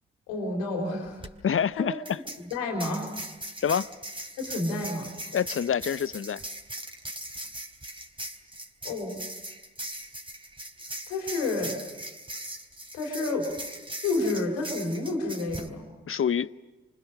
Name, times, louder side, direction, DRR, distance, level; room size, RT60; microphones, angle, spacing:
voice 1, 0.3-1.2 1.8-1.9 2.5-3.1 4.4-5.1 8.8-9.2 11.1-11.8 12.9-13.5 14.0-15.9, left 2 dB, 85° left, 2 dB, 3.9 m, -30 dB
sound 1, 1.1-1.3 2.0-15.7, right 1 dB, 15° right, 3.7 m, -40 dB
voice 2, 1.4-1.9 3.6-3.9 5.3-6.4 16.1-16.5, left 8 dB, 45° left, 16 dB, 0.9 m, -26 dB
30.0 x 25.0 x 6.7 m, 1.1 s
hypercardioid pair, 40°, 29 cm